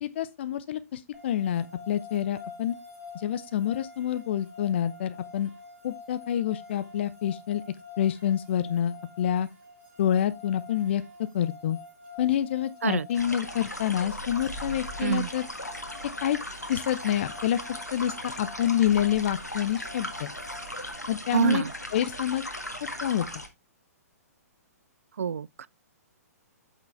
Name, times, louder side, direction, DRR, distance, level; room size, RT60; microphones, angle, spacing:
voice 1, 0.0-2.8 3.1-5.5 5.8-7.6 8.0-9.5 10.0-11.0 11.3-11.8 12.2-15.4 16.2-16.4 16.7-17.6 17.9-20.3 21.1-21.6 21.9-22.4 23.0-23.3, left 10 dB, 45° left, 0.6 m, -27 dB
sound 1, 1.1-20.9, left 4 dB, 15° right, 2.3 m, -48 dB
sound 2, 13.1-23.5, left 1 dB, 90° left, 1.6 m, -38 dB
voice 2, 21.3-21.7 25.2-25.7, right 7 dB, 60° right, 0.4 m, -26 dB
8.0 x 6.2 x 3.3 m
figure-of-eight pair, 120°, 9 cm